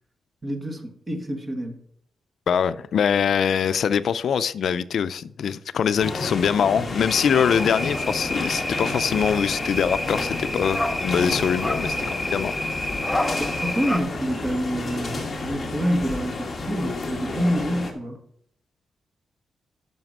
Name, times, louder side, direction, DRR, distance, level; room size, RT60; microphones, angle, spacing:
voice 1, 0.4-1.8 13.4-18.2, equal, 20° right, 1.3 m, -27 dB
voice 2, 2.5-12.5, left 7 dB, 65° left, 0.4 m, -23 dB
sound 1, 6.0-17.9, left 3 dB, 25° left, 1.6 m, -31 dB
sound 2, 7.1-14.0, left 1 dB, 5° left, 0.8 m, -29 dB
9.3 x 5.9 x 6.0 m
wide cardioid pair, 180°, 0 cm